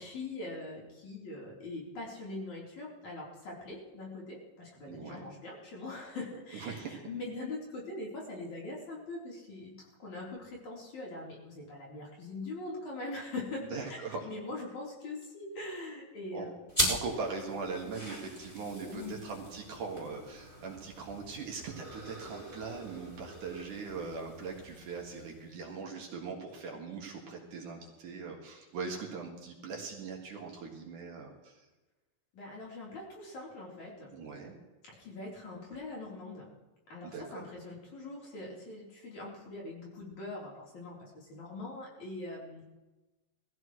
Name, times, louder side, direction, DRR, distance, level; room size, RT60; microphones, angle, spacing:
voice 1, 0.0-16.6 18.8-19.2 32.3-34.1 34.9-36.5 36.9-42.6, left 2 dB, 55° left, -4 dB, 5.1 m, -42 dB
voice 2, 4.9-5.3 6.5-7.0 13.7-14.3 16.3-16.5 16.9-31.5 34.1-34.5 37.0-37.4, right 4 dB, 60° right, 0 dB, 3.2 m, -40 dB
sound 1, 16.7-25.7, equal, 10° left, 4.9 m, -39 dB
21.0 x 15.0 x 3.2 m, 1.1 s
omnidirectional pair, 4.2 m